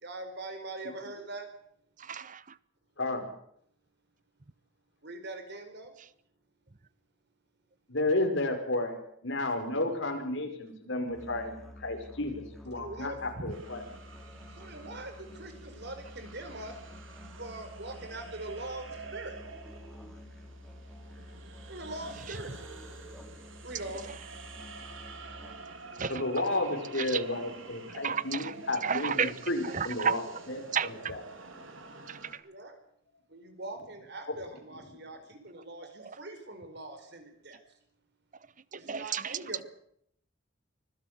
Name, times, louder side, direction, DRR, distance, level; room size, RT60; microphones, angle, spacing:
voice 1, 0.0-1.5 5.0-5.9 12.7-13.2 14.6-16.8 17.4-19.4 21.7-22.6 23.6-24.1 25.4-25.5 32.4-32.8 33.3-37.6 38.7-39.6, right 2 dB, 55° right, 4.7 m, -42 dB
voice 2, 2.0-2.4 26.0-26.2 27.0-27.2 28.0-28.5 28.8-29.3 29.6-30.2 30.7-31.1 32.1-32.4 36.0-36.1 38.7-39.4, right 7 dB, 40° right, 0.9 m, -32 dB
voice 3, 3.0-3.3 7.9-13.8 26.1-30.2 30.5-31.2, left 2 dB, 70° left, 5.1 m, -32 dB
Musical instrument, 11.1-25.8, left 1 dB, ahead, 4.1 m, -49 dB
sound 1, 13.5-32.3, right 4 dB, 80° right, 3.7 m, -48 dB
25.5 x 16.0 x 8.1 m
head